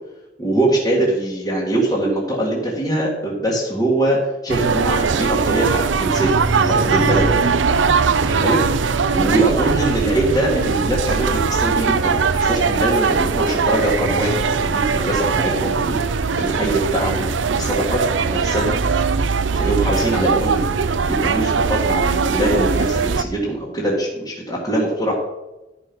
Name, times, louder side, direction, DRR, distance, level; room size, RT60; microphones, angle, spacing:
voice 1, 0.4-4.2 4.4-7.3 8.2-8.6 9.1-16.0 16.4-17.3 17.5-18.8 19.5-20.8 21.0-25.2, right 1 dB, 20° left, -6 dB, 2.0 m, -22 dB
sound 1, 4.5-23.2, right 5 dB, 85° right, 0.6 m, -20 dB
12.5 x 5.4 x 6.1 m, 1.0 s
head